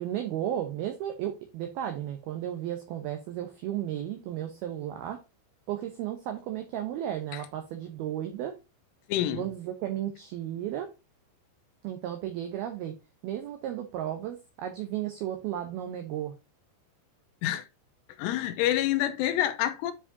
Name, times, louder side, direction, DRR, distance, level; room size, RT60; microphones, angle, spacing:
voice 1, 0.0-5.2 5.7-8.5 9.3-10.9 11.8-12.9 13.2-16.3, right 11 dB, 75° right, 2.3 m, -34 dB
voice 2, 9.1-9.5 17.4-17.7 18.2-19.9, left 13 dB, 90° left, 3.4 m, -27 dB
9.8 x 4.8 x 2.7 m
omnidirectional pair, 5.5 m